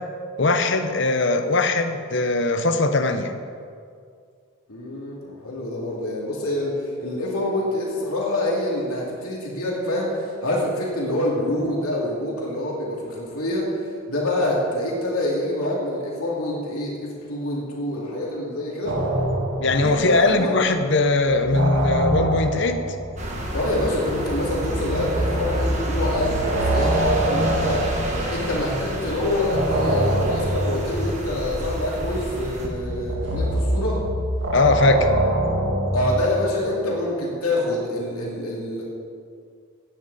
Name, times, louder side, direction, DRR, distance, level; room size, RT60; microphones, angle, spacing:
voice 1, 0.4-3.3 19.6-22.8 34.5-35.1, left 2 dB, 55° left, 7 dB, 0.8 m, -20 dB
voice 2, 4.7-13.7 14.1-19.0 19.7-20.5 23.5-34.0 35.9-38.8, left 1 dB, 90° left, -4 dB, 2.8 m, -26 dB
sound 1, 18.9-20.7 21.0-28.9 29.5-36.3, right 1 dB, 55° right, 1.8 m, -25 dB
sound 2, 23.2-32.7, right 1 dB, 30° right, 1.7 m, -30 dB
16.5 x 10.0 x 4.1 m, 2.2 s
head